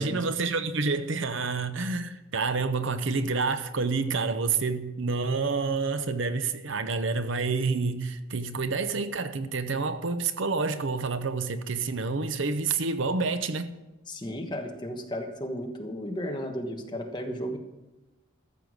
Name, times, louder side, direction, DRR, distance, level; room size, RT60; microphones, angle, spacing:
voice 1, 0.0-13.7, right 4 dB, 60° right, 0.7 m, -28 dB
voice 2, 14.1-17.6, equal, 20° left, 1.3 m, -34 dB
13.5 x 6.9 x 6.2 m
head